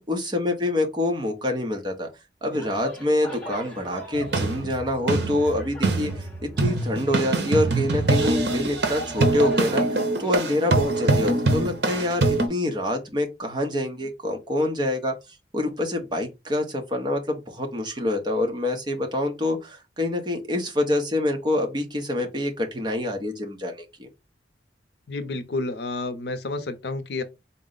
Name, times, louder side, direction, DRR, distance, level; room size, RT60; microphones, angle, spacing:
voice 1, 0.0-2.1 2.4-15.1 15.5-24.1, left 1 dB, 25° right, 0.7 m, -26 dB
sound 1, 2.5-10.6, equal, 5° left, 1.0 m, -41 dB
sound 2, 4.1-12.5, right 2 dB, 70° right, 0.8 m, -24 dB
voice 2, 25.1-27.2, left 2 dB, 70° left, 0.6 m, -30 dB
3.9 x 2.0 x 3.8 m
head